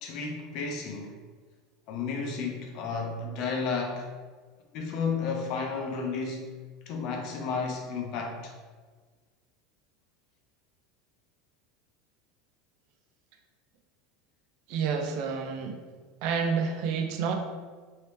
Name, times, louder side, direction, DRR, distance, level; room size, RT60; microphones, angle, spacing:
voice 1, 0.0-1.2 1.9-4.1 4.7-6.5 6.9-8.5, left 4 dB, 55° left, 2 dB, 0.7 m, -32 dB
voice 2, 14.7-15.8 16.2-17.3, right 6 dB, 60° right, 4 dB, 0.5 m, -29 dB
3.0 x 2.8 x 3.4 m, 1.4 s
supercardioid pair, 125°, 0 cm